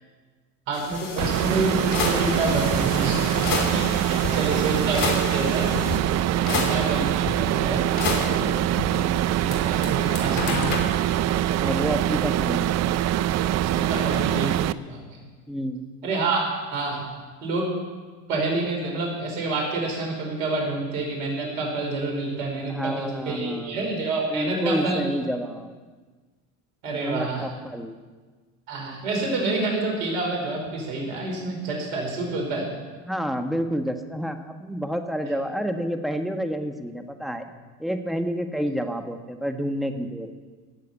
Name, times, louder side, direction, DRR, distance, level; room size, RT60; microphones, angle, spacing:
sound 1, 0.7-6.0 6.5-7.3 8.0-9.6 9.8-10.8, left 4 dB, 65° left, 3.3 m, -30 dB
voice 1, 0.7-5.7 6.1-8.5 9.4-10.8 13.6-14.5 14.9-15.2 16.0-17.0 17.4-17.7 18.3-25.0 26.8-27.4 28.7-32.7, right 2 dB, 75° right, 0 dB, 5.0 m, -28 dB
sound 2, 1.2-14.7, right 12 dB, 40° right, 0.5 m, -24 dB
voice 2, 6.4-6.7 11.6-12.8 15.5-15.8 22.7-23.8 24.3-25.7 26.9-28.0 33.0-37.4 37.8-40.3, equal, ahead, 6 dB, 1.4 m, -29 dB
16.5 x 7.6 x 8.5 m, 1.4 s
hypercardioid pair, 80°, 42 cm